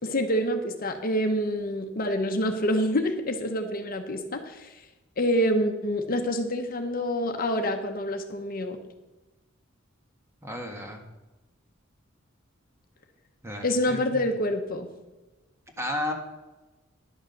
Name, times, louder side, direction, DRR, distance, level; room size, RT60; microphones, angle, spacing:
voice 1, 0.0-4.8 5.2-8.8 13.6-14.9, equal, 45° left, 5 dB, 1.0 m, -27 dB
voice 2, 10.4-11.0 13.4-14.2 15.8-16.1, left 1 dB, 15° right, 2 dB, 1.6 m, -33 dB
11.0 x 6.4 x 6.6 m, 1.1 s
head